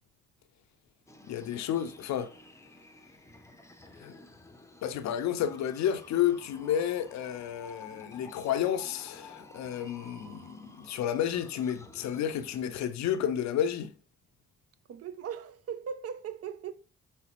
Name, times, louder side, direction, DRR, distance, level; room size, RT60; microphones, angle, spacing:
sound 1, 1.1-12.6, left 2 dB, 10° left, 0.6 m, -52 dB
voice 1, 1.3-2.3 4.0-4.1 4.8-13.9, left 10 dB, 55° left, 0.5 m, -31 dB
voice 2, 14.9-16.7, right 7 dB, 45° right, 0.5 m, -38 dB
4.3 x 3.4 x 2.9 m
hypercardioid pair, 45°, 33 cm